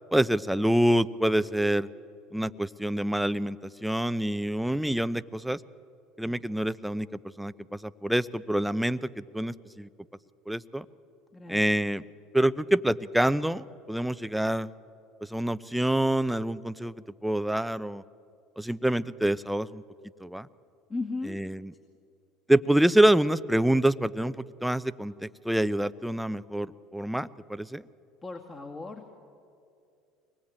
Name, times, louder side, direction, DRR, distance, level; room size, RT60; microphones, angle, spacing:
voice 1, 0.1-1.9 2.3-5.6 6.2-7.1 7.4-9.9 10.5-10.9 11.5-12.0 12.3-14.7 15.3-18.0 18.6-19.8 20.2-20.5 21.3-21.7 22.5-27.8, right 1 dB, 5° right, 15 dB, 0.7 m, -26 dB
voice 2, 20.9-21.4 28.2-29.0, left 3 dB, 25° left, 1 dB, 2.3 m, -36 dB
24.5 x 19.5 x 8.9 m, 2.5 s
hypercardioid pair, 75°, 0 cm